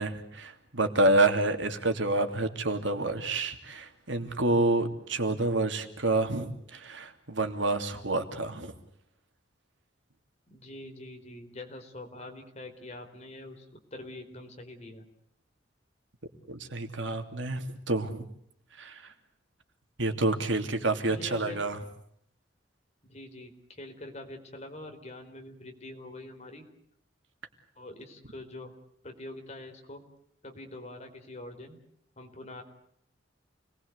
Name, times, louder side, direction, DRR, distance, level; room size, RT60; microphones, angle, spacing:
voice 1, 0.0-8.7 16.5-18.2 18.8-19.0 20.0-21.8, right 2 dB, 75° right, 6 dB, 2.9 m, -28 dB
voice 2, 10.5-15.0 21.1-21.6 23.0-26.7 27.8-28.7 29.0-30.0 30.4-31.8 32.2-32.6, left 1 dB, 35° left, 4 dB, 4.5 m, -44 dB
29.0 x 20.5 x 8.2 m, 0.70 s
head